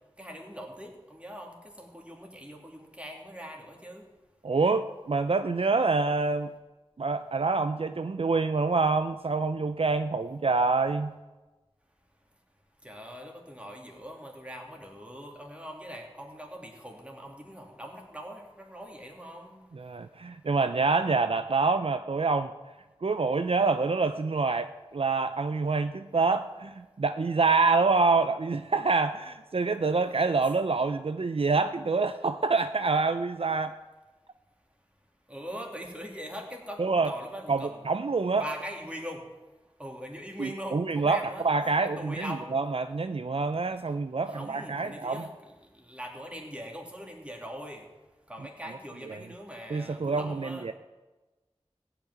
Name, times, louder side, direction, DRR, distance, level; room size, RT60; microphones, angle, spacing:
voice 1, 0.2-4.0 12.8-19.6 35.3-37.8 38.3-39.2 39.8-42.6 44.3-47.9 48.3-50.7, equal, 10° right, 0 dB, 2.8 m, -42 dB
voice 2, 4.4-6.5 7.0-11.1 19.7-22.5 23.0-33.8 36.8-37.1 37.5-38.4 40.4-45.2 49.1-49.2 49.7-50.7, right 4 dB, 60° right, 9 dB, 0.5 m, -26 dB
16.0 x 5.9 x 9.5 m, 1.2 s
wide cardioid pair, 50°, 11 cm